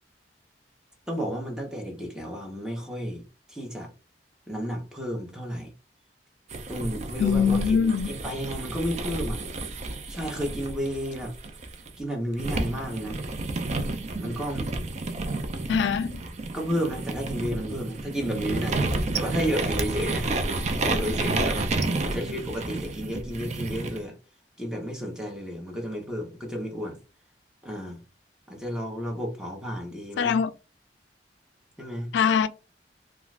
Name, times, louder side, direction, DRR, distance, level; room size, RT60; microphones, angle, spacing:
voice 1, 1.1-3.2 3.5-3.9 4.5-5.7 6.7-9.4 10.1-11.3 12.0-13.2 14.2-14.7 16.5-18.9 19.1-20.3 20.7-21.7 22.1-24.2 24.6-27.0 27.6-28.0 28.5-30.4 31.8-32.1, equal, 5° right, 0.8 m, -32 dB
sound 1, 6.5-11.9 12.4-24.0, right 2 dB, 40° right, 0.4 m, -30 dB
voice 2, 7.2-8.2 15.7-16.2 30.2-30.5 32.1-32.5, left 6 dB, 80° left, 0.3 m, -23 dB
2.4 x 2.3 x 3.2 m
head